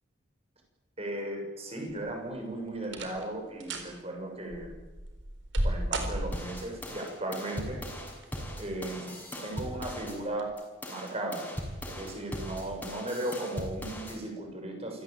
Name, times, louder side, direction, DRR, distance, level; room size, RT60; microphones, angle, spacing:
voice 1, 1.0-4.8 5.6-7.8 8.5-10.5 10.9-11.5 11.9-15.0, right 1 dB, 30° right, 2 dB, 6.7 m, -36 dB
sound 1, 1.9-2.3 2.8-3.3 3.6-3.9 4.5-6.7 7.9-8.5 8.9-9.0 9.8-10.0 10.3-10.4, right 1 dB, 65° right, 4.1 m, -33 dB
sound 2, 6.3-10.2 10.6-14.2, equal, 10° left, 6.2 m, -39 dB
27.5 x 17.0 x 9.1 m, 1.1 s
head